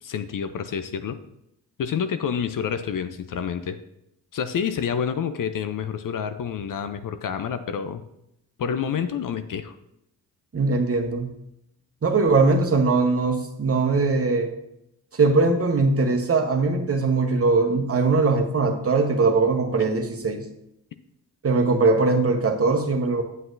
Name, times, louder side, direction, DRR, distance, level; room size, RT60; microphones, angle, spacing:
voice 1, 0.0-1.2 1.8-3.8 4.3-8.0 8.6-9.7, left 7 dB, 50° left, 10 dB, 0.6 m, -28 dB
voice 2, 10.5-11.3 12.0-14.5 15.1-20.5 21.4-23.2, right 3 dB, 35° right, 5 dB, 1.1 m, -21 dB
7.7 x 7.6 x 2.6 m, 0.81 s
supercardioid pair, 50°, 41 cm